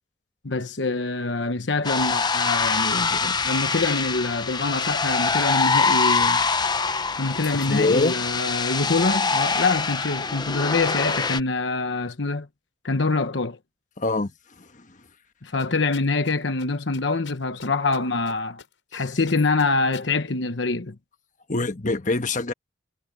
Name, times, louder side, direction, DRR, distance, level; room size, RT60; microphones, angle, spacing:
voice 1, 0.4-6.4 7.2-12.5 12.8-13.6 15.4-18.6 18.9-20.9, left 3 dB, 70° left, 1.1 m, -25 dB
sound 1, 1.8-11.4, left 4 dB, 20° left, 0.8 m, -24 dB
voice 2, 7.5-8.2 14.0-14.3 14.6-15.0 18.9-19.0 21.5-22.5, left 2 dB, 40° left, 1.3 m, -25 dB
sound 2, 15.6-16.3 16.6-16.7 16.9-18.3 18.6-19.0 19.3-20.1, left 6 dB, 85° left, 5.6 m, -44 dB
head